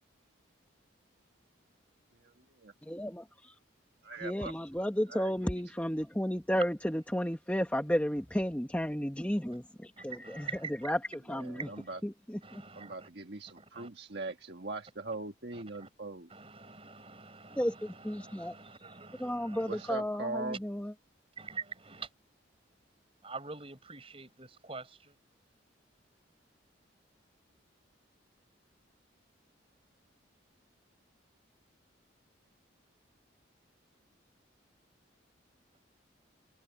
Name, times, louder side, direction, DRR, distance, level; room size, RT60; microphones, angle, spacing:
voice 1, 2.8-3.3 4.2-11.7 12.0-12.6 17.5-18.5 19.2-20.9, equal, 5° left, 1.3 m, -33 dB
voice 2, 4.0-4.5 5.1-5.3 11.3-12.0 12.7-16.3 19.7-20.6, right 3 dB, 60° right, 1.5 m, -40 dB
voice 3, 10.0-10.7 11.6-11.8 12.4-13.1 13.6-13.9 15.5-15.9 16.3-19.9 21.4-22.1 23.2-25.1, right 4 dB, 30° right, 6.2 m, -46 dB
head